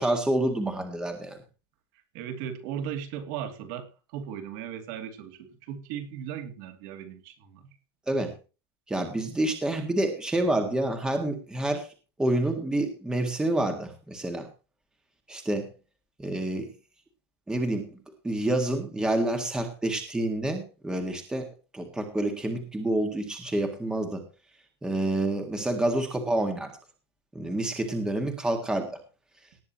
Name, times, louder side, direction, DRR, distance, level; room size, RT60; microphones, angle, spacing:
voice 1, 0.0-1.4 8.1-8.3 8.9-11.9 12.2-14.5 15.3-15.7 16.2-16.7 17.5-18.0 18.2-21.5 21.7-24.2 24.8-26.7 27.4-29.0, right 1 dB, 5° right, 6 dB, 1.7 m, -28 dB
voice 2, 2.1-7.8, right 9 dB, 50° right, 6 dB, 2.6 m, -37 dB
19.0 x 9.6 x 2.9 m, 0.31 s
supercardioid pair, 170°, 13 cm